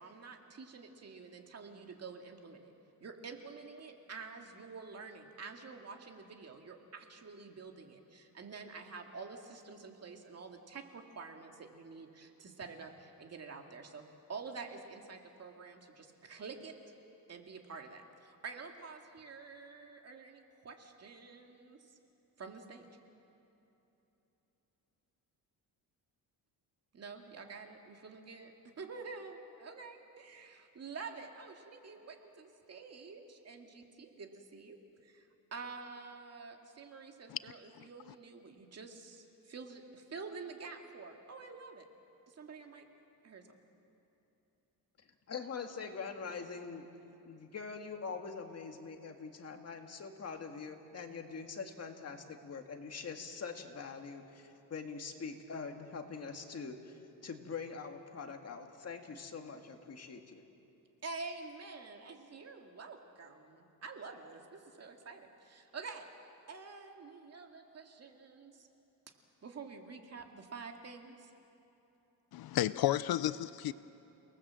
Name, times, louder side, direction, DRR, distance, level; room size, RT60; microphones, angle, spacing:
voice 1, 0.0-2.7 3.0-14.0 14.3-16.7 17.3-22.0 22.4-22.9 26.9-28.5 28.8-34.8 35.0-41.9 42.3-42.9 43.2-43.6 61.0-66.1 66.5-68.7 69.4-71.3, right 4 dB, 40° right, 3 dB, 2.2 m, -48 dB
voice 2, 45.3-46.9 47.2-60.4, left 5 dB, 40° left, 4 dB, 2.0 m, -44 dB
voice 3, 72.3-73.7, left 13 dB, 70° left, 15 dB, 0.6 m, -32 dB
30.0 x 19.0 x 7.6 m, 3.0 s
cardioid pair, 140°, 38 cm